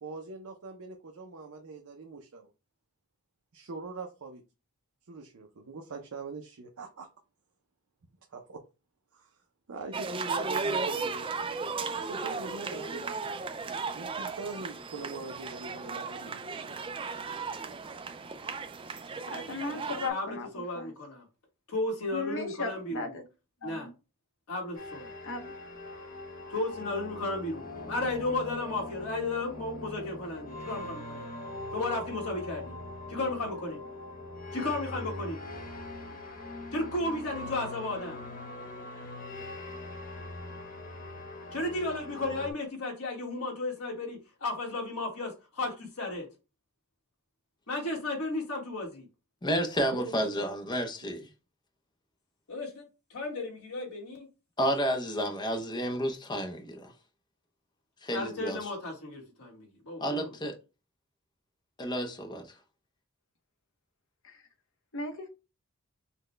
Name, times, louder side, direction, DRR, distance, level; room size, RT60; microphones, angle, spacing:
voice 1, 0.0-2.5 3.5-4.4 5.1-7.1 8.3-8.6 9.1-9.4 9.7-11.3 11.9-13.3 13.9-16.8 49.9-50.1, right 3 dB, 70° right, 0.6 m, -42 dB
sound 1, 9.9-20.1, right 4 dB, 25° right, 0.3 m, -35 dB
voice 2, 19.3-20.5 20.8-20.9 22.1-23.2 23.6-23.9 25.2-25.5 64.9-65.3, left 3 dB, 60° left, 0.8 m, -36 dB
voice 3, 20.1-21.2 21.7-23.1 23.6-23.9 24.5-25.1 26.5-31.3 31.7-32.7 33.1-33.8 34.5-35.4 36.7-38.2 41.5-46.2 47.7-49.1 52.5-52.8 53.1-54.3 58.1-60.3, left 2 dB, 80° left, 1.4 m, -34 dB
sound 2, 24.7-42.5, left 2 dB, 40° left, 1.1 m, -42 dB
voice 4, 49.4-51.3 54.6-56.9 58.0-58.7 60.0-60.6 61.8-62.5, equal, 20° left, 0.6 m, -31 dB
5.7 x 2.2 x 3.2 m
head